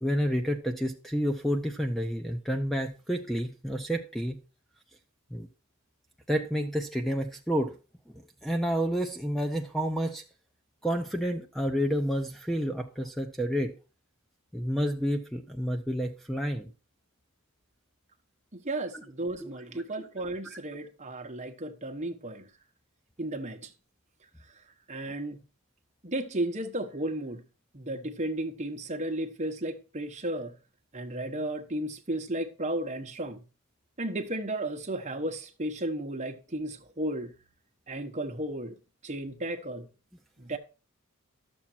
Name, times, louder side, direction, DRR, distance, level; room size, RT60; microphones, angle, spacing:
voice 1, 0.0-4.4 5.3-5.5 6.3-7.8 8.4-10.2 10.8-13.7 14.5-16.7 18.9-19.0 19.4-19.9 20.4-20.6, equal, ahead, 0.6 m, -30 dB
voice 2, 18.5-22.4 23.2-23.7 24.9-25.4 26.0-27.4 27.7-30.5 30.9-33.4 34.0-37.3 37.9-38.7 39.0-39.9 40.4-40.6, right 1 dB, 30° right, 1.1 m, -34 dB
12.5 x 7.3 x 4.5 m
head